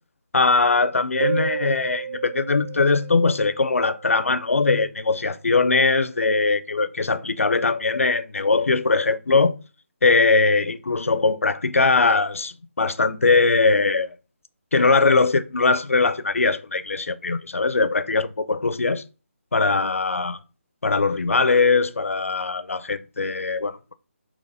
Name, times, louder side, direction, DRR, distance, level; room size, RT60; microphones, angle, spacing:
voice 1, 0.3-9.6 10.0-14.2 14.7-19.0 19.5-20.4 20.8-23.9, left 3 dB, 90° left, 0.7 m, -21 dB
sound 1, 1.2-4.5, right 7 dB, 50° right, 0.7 m, -31 dB
6.5 x 3.1 x 5.5 m
hypercardioid pair, 170°, 7 cm